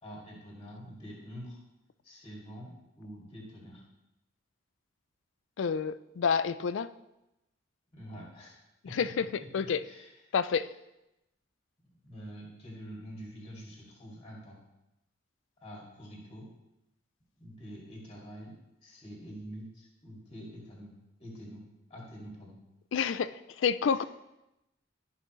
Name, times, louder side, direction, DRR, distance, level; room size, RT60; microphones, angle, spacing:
voice 1, 0.0-1.6 2.0-3.8 7.9-8.6 8.9-9.0 9.8-10.1 12.0-14.6 15.6-16.5 17.4-18.5 18.8-20.9 21.2-21.6 21.9-22.6 23.8-23.9, equal, 30° left, -4 dB, 2.4 m, -46 dB
voice 2, 5.6-6.9 8.9-9.8 10.3-10.7 22.9-23.3 23.6-24.0, left 6 dB, 70° left, 14 dB, 0.4 m, -29 dB
13.0 x 5.7 x 3.1 m, 0.92 s
head